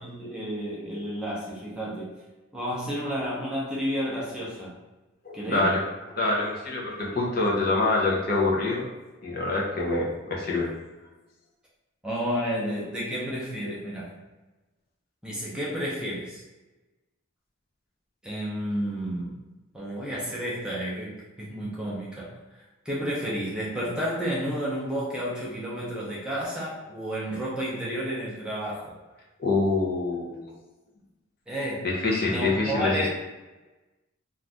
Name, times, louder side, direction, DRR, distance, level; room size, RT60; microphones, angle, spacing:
voice 1, 0.0-2.1 2.5-4.8 5.3-5.7 7.1-7.2 12.0-14.1 15.2-16.4 18.2-19.4 19.7-22.4 22.8-28.9 31.5-31.9 32.3-33.1, equal, 5° right, -6 dB, 0.5 m, -31 dB
voice 2, 5.2-5.8 6.2-8.8 9.2-10.7 29.4-30.5 31.8-33.1, left 2 dB, 45° left, -3 dB, 0.6 m, -25 dB
2.6 x 2.4 x 3.3 m, 1.1 s
head